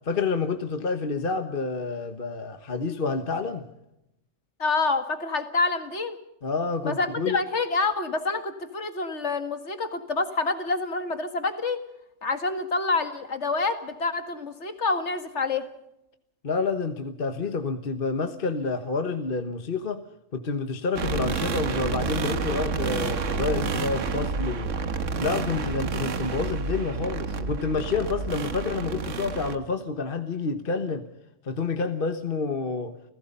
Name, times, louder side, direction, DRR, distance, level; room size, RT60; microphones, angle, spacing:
voice 1, 0.0-3.6 6.4-7.4 16.4-20.0 20.3-24.7 25.2-31.0 31.4-32.9, left 4 dB, 45° left, 8 dB, 1.4 m, -28 dB
voice 2, 4.6-6.2 6.9-11.8 12.2-15.6, left 3 dB, 60° left, 9 dB, 2.2 m, -27 dB
sound 1, 21.0-29.6, right 5 dB, 75° right, 1.6 m, -29 dB
29.5 x 17.0 x 5.5 m, 0.85 s
omnidirectional pair, 1.3 m